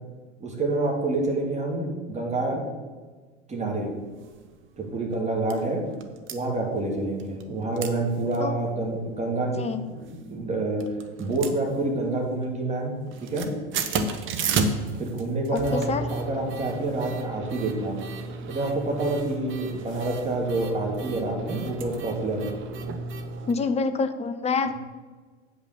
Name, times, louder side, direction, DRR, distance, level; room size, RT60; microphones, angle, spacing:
voice 1, 0.4-2.6 3.5-3.9 4.8-5.8 6.3-9.6 9.9-10.8 11.2-12.9 13.2-13.5 15.0-15.8 16.1-18.0 18.5-22.5, right 2 dB, 20° right, -1 dB, 2.7 m, -27 dB
sound 1, 4.2-4.4 4.8-4.9 5.1-5.6 6.0-6.4 7.2-7.5 7.8-7.9 8.3-8.4 8.8-9.2 9.9-10.5 10.8-12.2 12.4-12.8 13.0-23.5, right 4 dB, 35° right, 1.0 m, -32 dB
voice 2, 15.5-16.1 23.5-24.7, left 4 dB, 20° left, 9 dB, 0.8 m, -26 dB
8.5 x 5.6 x 6.9 m, 1.4 s
figure-of-eight pair, 80°, 35 cm